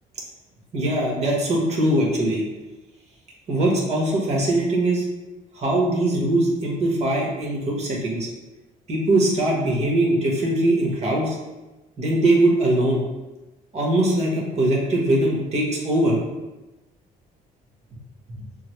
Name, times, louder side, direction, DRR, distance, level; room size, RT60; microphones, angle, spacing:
voice 1, 0.7-2.4 3.5-5.0 5.5-8.3 8.9-11.4 12.0-13.0 13.7-16.2, right 1 dB, 40° right, -2 dB, 1.4 m, -21 dB
6.2 x 2.2 x 3.1 m, 1.1 s
cardioid pair, 110°, 17 cm